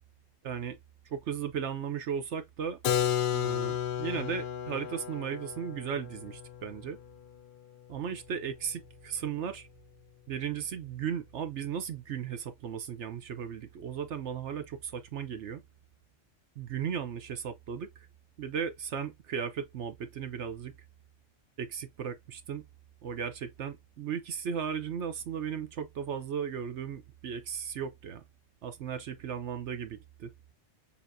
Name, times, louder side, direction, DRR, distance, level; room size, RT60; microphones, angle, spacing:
voice 1, 0.4-0.8 1.1-2.8 3.3-7.0 7.9-9.7 10.3-15.6 16.6-17.9 18.4-20.7 21.6-22.6 23.0-28.2 28.6-30.3, right 7 dB, 65° right, 1.0 m, -36 dB
Keyboard (musical), 2.8-8.5, left 10 dB, 60° left, 0.5 m, -33 dB
7.0 x 2.9 x 2.6 m
omnidirectional pair, 1.3 m